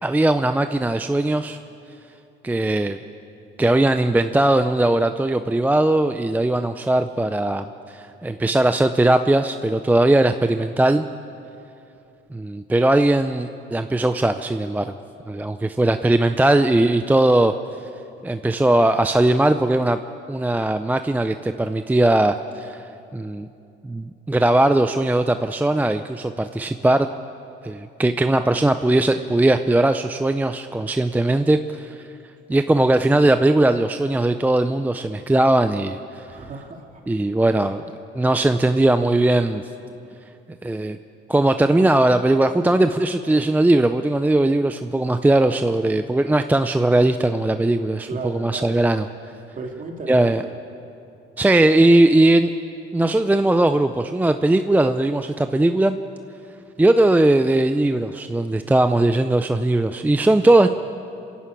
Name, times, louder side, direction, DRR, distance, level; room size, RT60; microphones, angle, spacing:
voice 1, 0.0-1.6 2.4-3.0 3.6-11.1 12.3-14.9 15.3-17.5 18.2-20.0 20.3-22.8 23.1-23.5 23.8-27.1 27.6-32.0 32.5-36.2 37.1-37.8 38.1-39.6 40.6-41.0 41.3-49.1 50.1-50.4 51.4-52.5 52.9-56.0 56.8-60.7, right 2 dB, 10° right, 9 dB, 0.5 m, -19 dB
voice 2, 36.2-37.0 40.0-40.1 48.1-48.7 49.5-50.5, right 3 dB, 40° right, 2 dB, 2.7 m, -35 dB
27.0 x 11.5 x 8.6 m, 2.7 s
cardioid pair, 110°, 20 cm